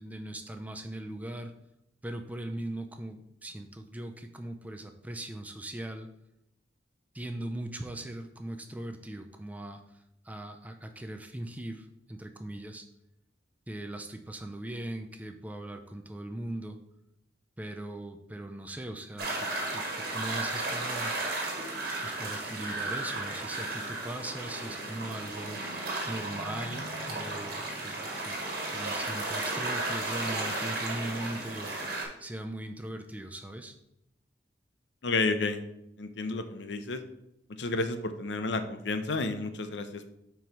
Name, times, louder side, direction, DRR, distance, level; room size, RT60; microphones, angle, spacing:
voice 1, 0.0-1.5 2.0-6.1 7.1-9.8 10.2-12.8 13.7-16.8 17.6-21.1 22.0-25.8 26.1-28.4 28.7-31.7 32.2-33.7, right 1 dB, 10° right, 6 dB, 0.4 m, -39 dB
sound 1, 19.2-32.0, right 2 dB, 55° right, 1.6 m, -34 dB
sound 2, 24.1-29.4, left 1 dB, 45° left, 0.9 m, -50 dB
voice 2, 35.0-35.6 36.0-37.0 37.6-40.1, left 3 dB, 70° left, 9 dB, 0.6 m, -31 dB
4.6 x 4.5 x 5.3 m, 0.81 s
head